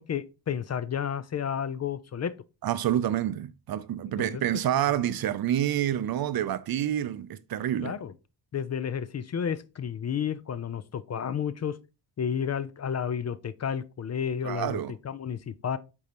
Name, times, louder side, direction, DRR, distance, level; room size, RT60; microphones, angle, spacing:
voice 1, 0.0-2.3 4.2-4.4 4.9-5.0 7.8-8.1 8.5-11.8 12.2-15.8, left 8 dB, 35° left, 0.4 m, -31 dB
voice 2, 2.6-7.9 14.4-14.9, right 11 dB, 55° right, 0.6 m, -28 dB
8.4 x 5.3 x 2.9 m
wide cardioid pair, 155°, 45 cm